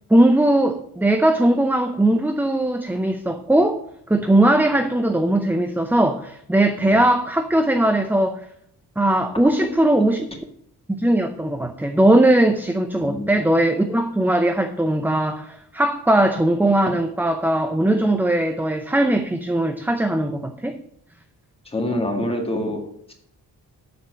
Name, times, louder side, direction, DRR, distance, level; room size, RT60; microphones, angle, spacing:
voice 1, 0.1-3.8 4.1-8.4 9.0-10.3 10.9-20.7, right 1 dB, 5° right, 6 dB, 0.5 m, -19 dB
voice 2, 21.6-23.1, left 1 dB, 15° left, 1 dB, 2.0 m, -26 dB
7.5 x 6.9 x 7.3 m, 0.69 s
wide cardioid pair, 155°, 38 cm